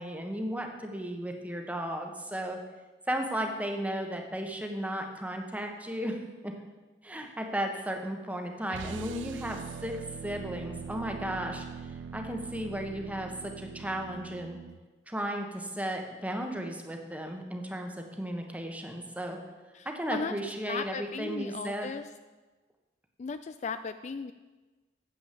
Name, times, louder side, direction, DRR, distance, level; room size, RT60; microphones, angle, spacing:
voice 1, 0.0-2.6 3.1-6.6 7.0-14.6 15.1-19.4 19.8-21.9, right 1 dB, 10° right, 3 dB, 1.2 m, -35 dB
sound 1, 8.7-14.8, right 6 dB, 85° right, 0.4 m, -42 dB
voice 2, 19.7-20.3 20.7-22.1 23.2-24.3, left 5 dB, 40° left, 10 dB, 0.3 m, -36 dB
9.6 x 7.3 x 7.6 m, 1.2 s
head